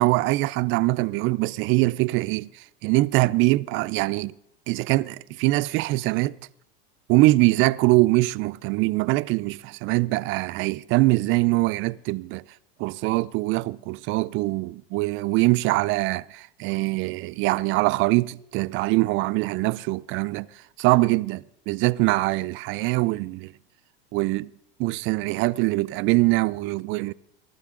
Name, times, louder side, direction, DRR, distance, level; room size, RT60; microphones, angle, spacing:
voice 1, 0.0-2.5 2.8-4.3 4.7-6.3 7.1-12.4 12.8-20.5 20.8-23.5 24.1-24.5 24.8-27.1, right 21 dB, 45° right, 0.4 m, -23 dB
20.5 x 12.5 x 3.7 m
supercardioid pair, 125°, 29 cm